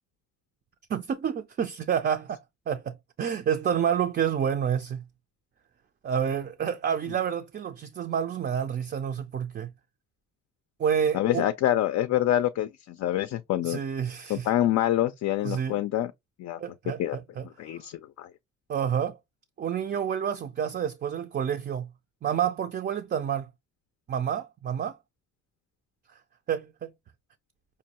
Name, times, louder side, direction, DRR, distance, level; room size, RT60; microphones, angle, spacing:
voice 1, 0.9-2.4 2.7-5.0 6.0-9.7 10.8-11.5 13.6-14.5 15.4-15.8 16.6-17.5 18.7-19.2 19.6-21.9 22.2-23.5 24.1-24.9 26.5-26.9, right 8 dB, 35° right, 0.4 m, -29 dB
voice 2, 11.1-13.8 14.3-16.1 16.4-16.6 17.0-17.2 17.6-18.3, left 12 dB, 60° left, 0.4 m, -26 dB
5.2 x 2.2 x 2.8 m
cardioid pair, 90°, 30 cm